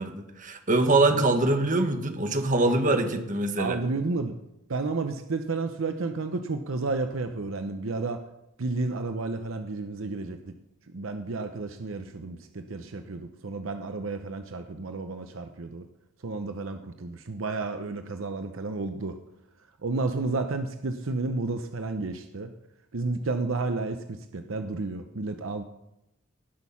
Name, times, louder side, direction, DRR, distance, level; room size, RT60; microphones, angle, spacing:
voice 1, 0.0-3.8, right 2 dB, 40° right, 6 dB, 1.3 m, -24 dB
voice 2, 1.1-1.5 2.6-3.0 3.6-4.4 4.7-8.2 8.6-10.5 10.9-15.9 16.2-19.2 19.8-22.5 22.9-25.6, right 3 dB, 70° right, 7 dB, 0.7 m, -31 dB
18.0 x 6.3 x 5.7 m, 0.87 s
head